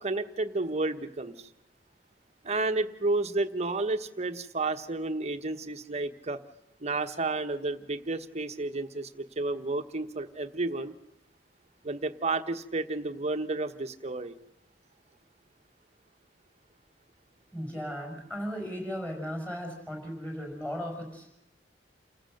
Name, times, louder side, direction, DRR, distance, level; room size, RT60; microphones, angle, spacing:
voice 1, 0.0-1.5 2.4-6.4 6.8-10.9 11.8-14.4, right 2 dB, 35° right, 8 dB, 1.1 m, -31 dB
voice 2, 17.5-21.3, equal, 5° left, 3 dB, 5.6 m, -36 dB
28.5 x 15.0 x 6.6 m, 0.87 s
head